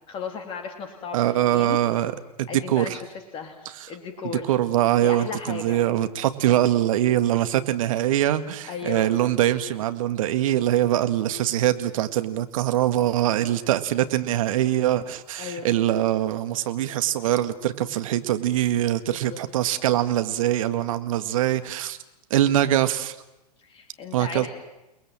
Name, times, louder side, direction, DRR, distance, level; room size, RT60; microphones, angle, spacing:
voice 1, 0.1-1.8 2.5-3.0 3.3-4.5 5.0-5.9 8.7-9.1 15.4-15.7 19.1-19.5 23.6-24.5, left 5 dB, 25° left, 4 dB, 2.9 m, -35 dB
voice 2, 1.1-2.9 4.5-22.0 22.3-23.2 24.1-24.5, right 12 dB, 55° right, 10 dB, 1.9 m, -23 dB
29.5 x 20.0 x 7.5 m, 0.97 s
figure-of-eight pair, 110°, 21 cm